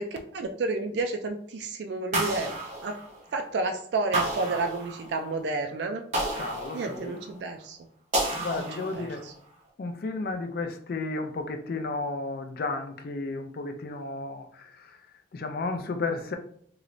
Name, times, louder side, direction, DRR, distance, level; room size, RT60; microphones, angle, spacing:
voice 1, 0.0-2.5 2.8-3.0 3.3-6.0 6.7-7.8 8.6-8.7 8.9-9.1, right 3 dB, 65° right, 0.3 m, -30 dB
sound 1, 2.1-3.5 4.1-5.3 6.1-7.4 8.1-9.3, right 1 dB, 40° right, 0.8 m, -31 dB
voice 2, 6.4-7.2 8.4-9.3 9.8-15.0 15.3-16.4, left 3 dB, 55° left, 0.4 m, -33 dB
3.1 x 3.0 x 2.5 m
head